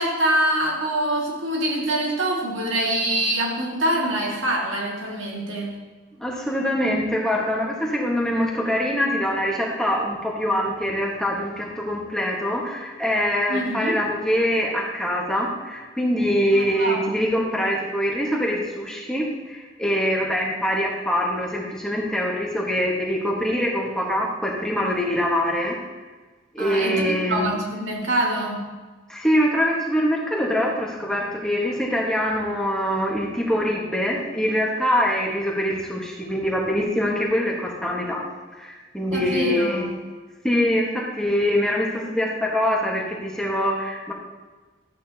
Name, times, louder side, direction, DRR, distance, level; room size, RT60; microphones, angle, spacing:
voice 1, 0.0-5.8 13.5-14.0 16.5-17.1 26.6-28.7 39.1-39.9, right 1 dB, 75° right, -2 dB, 2.1 m, -25 dB
voice 2, 6.2-25.8 26.5-27.6 29.1-38.2 38.5-39.8 40.4-44.1, equal, 5° left, -3 dB, 1.4 m, -24 dB
12.5 x 8.7 x 2.9 m, 1.3 s
head